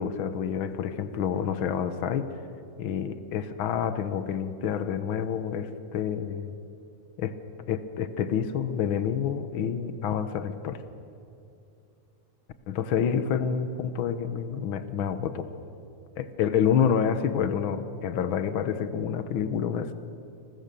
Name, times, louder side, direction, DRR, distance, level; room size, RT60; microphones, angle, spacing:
voice 1, 0.0-2.3 2.8-6.5 7.2-7.4 7.7-10.8 12.7-15.5 16.2-19.9, left 8 dB, 60° left, 11 dB, 1.4 m, -28 dB
29.5 x 21.0 x 6.9 m, 2.7 s
omnidirectional pair, 3.4 m